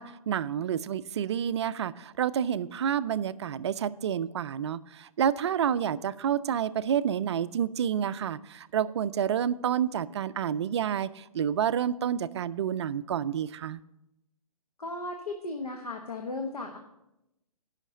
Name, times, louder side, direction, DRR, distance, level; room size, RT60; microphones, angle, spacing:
voice 1, 0.0-13.8, right 9 dB, 50° right, 16 dB, 0.4 m, -29 dB
voice 2, 14.8-16.8, left 2 dB, 90° left, 3 dB, 1.1 m, -36 dB
8.2 x 5.8 x 7.1 m, 0.90 s
figure-of-eight pair, 135°, 19 cm